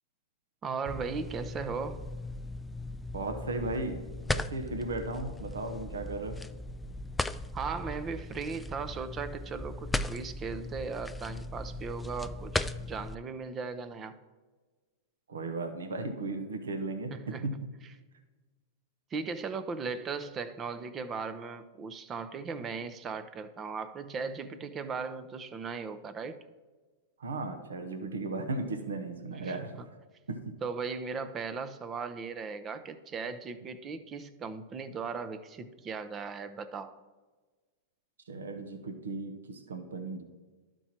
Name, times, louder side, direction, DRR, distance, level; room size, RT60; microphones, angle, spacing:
voice 1, 0.6-2.1 7.5-14.2 17.1-17.6 19.1-26.4 29.3-29.9 30.6-37.0, right 5 dB, 30° right, 12 dB, 0.7 m, -37 dB
sound 1, 0.9-13.2, left 2 dB, 10° left, 0.3 m, -37 dB
voice 2, 3.1-4.0 4.3-6.4 15.3-17.5 27.2-29.7 30.3-30.4 38.3-40.2, right 2 dB, 85° right, 6 dB, 1.0 m, -36 dB
12.0 x 4.5 x 4.4 m, 1.3 s
hypercardioid pair, 110°, 0 cm